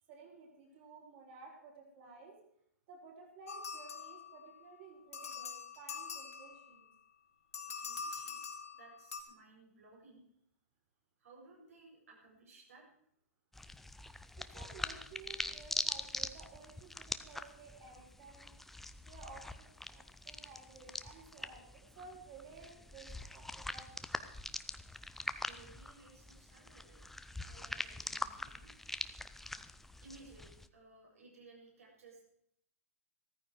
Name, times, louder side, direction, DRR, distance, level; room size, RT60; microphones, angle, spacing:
voice 1, 0.1-2.4 2.9-6.9 14.4-18.5 19.1-24.0, right 4 dB, 45° right, -1 dB, 5.5 m, -55 dB
sound 1, 3.5-4.6 5.1-6.8 7.5-9.2, left 5 dB, 80° left, 2.5 m, -44 dB
voice 2, 7.7-10.2 11.2-12.9 23.5-23.7 25.4-27.0 27.4-29.1 30.0-32.3, right 3 dB, 75° right, -1 dB, 6.8 m, -59 dB
sound 2, 13.5-30.7, left 2 dB, 5° left, 0.5 m, -43 dB
14.5 x 14.0 x 4.8 m, 0.71 s
hypercardioid pair, 130°, 8 cm